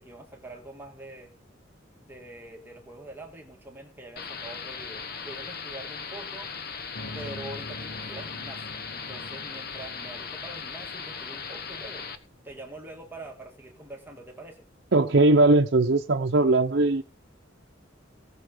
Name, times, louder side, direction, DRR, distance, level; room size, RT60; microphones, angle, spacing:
voice 1, 0.0-1.3 2.0-6.5 7.1-12.1 12.4-14.7, right 2 dB, 10° right, 1.9 m, -44 dB
sound 1, 4.2-12.2, left 5 dB, 50° left, 1.3 m, -38 dB
sound 2, 6.9-11.8, left 1 dB, 80° left, 2.5 m, -44 dB
voice 2, 14.9-17.0, right 2 dB, 60° right, 0.7 m, -20 dB
18.5 x 6.5 x 5.1 m
head